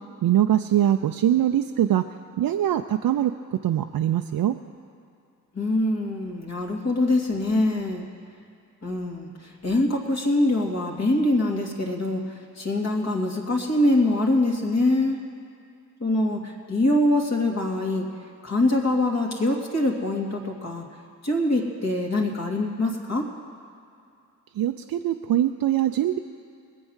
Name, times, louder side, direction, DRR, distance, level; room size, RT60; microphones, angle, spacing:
voice 1, 0.2-2.0 2.4-3.3 3.6-4.5 24.6-26.2, right 11 dB, 60° right, 5 dB, 0.6 m, -22 dB
voice 2, 5.5-8.1 8.8-9.3 9.6-12.2 12.6-15.2 16.0-18.0 18.4-20.8 21.2-23.3, left 1 dB, 40° left, 0 dB, 2.7 m, -24 dB
21.0 x 7.8 x 6.4 m, 2.5 s
supercardioid pair, 40°, 40 cm